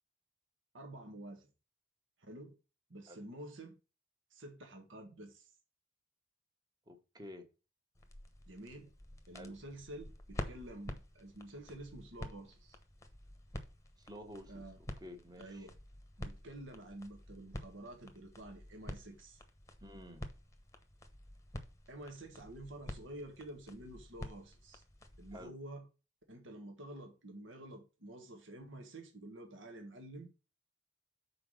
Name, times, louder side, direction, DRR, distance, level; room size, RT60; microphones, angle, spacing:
voice 1, 0.7-1.5 2.3-2.6 2.9-3.8 4.3-5.6 8.5-8.9 9.3-12.8 14.5-14.8 15.4-15.7 16.2-19.4 21.9-24.8 25.2-25.9 26.3-30.3, right 1 dB, 75° right, 1.5 m, -49 dB
voice 2, 6.9-7.5 9.3-9.5 14.0-15.7 19.8-20.3 25.3-25.6, left 1 dB, 20° right, 1.3 m, -51 dB
sound 1, 7.9-25.5, left 1 dB, 15° left, 1.0 m, -49 dB
5.8 x 4.7 x 6.3 m
head